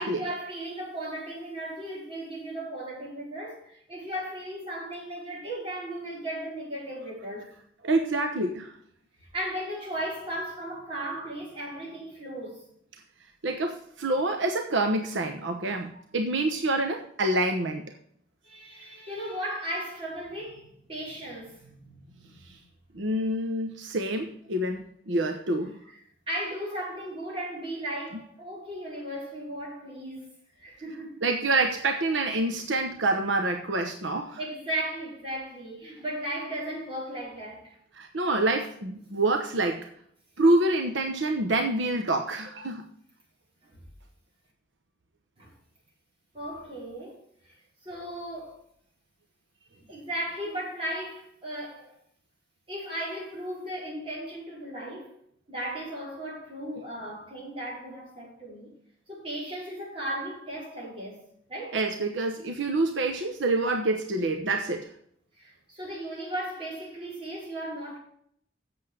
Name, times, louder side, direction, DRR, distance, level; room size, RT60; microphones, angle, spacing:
voice 1, 0.0-7.5 9.3-12.7 15.9-16.0 18.4-22.5 26.3-30.3 30.6-31.2 34.4-37.8 45.4-45.5 46.3-47.2 47.4-47.5 47.8-48.6 49.7-51.9 52.7-55.1 55.5-58.7 59.1-61.2 61.5-61.8 65.4-68.0, right 1 dB, 30° right, 4.9 m, -36 dB
voice 2, 7.8-8.7 13.4-17.8 22.9-25.7 31.2-34.4 38.0-39.9 40.4-42.8 61.7-64.9, right 2 dB, 75° right, 1.0 m, -27 dB
7.9 x 7.3 x 6.4 m
head